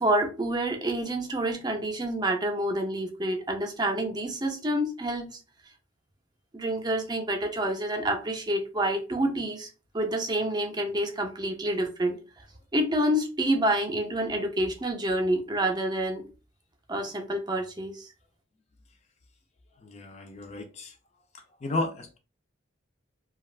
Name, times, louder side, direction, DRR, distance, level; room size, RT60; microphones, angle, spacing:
voice 1, 0.0-5.4 6.5-9.7 9.9-12.2 12.7-16.3 16.9-18.1, right 1 dB, 20° right, 0.5 m, -28 dB
voice 2, 19.8-20.9 21.6-22.2, left 2 dB, 35° left, 0.4 m, -33 dB
2.4 x 2.3 x 3.1 m
head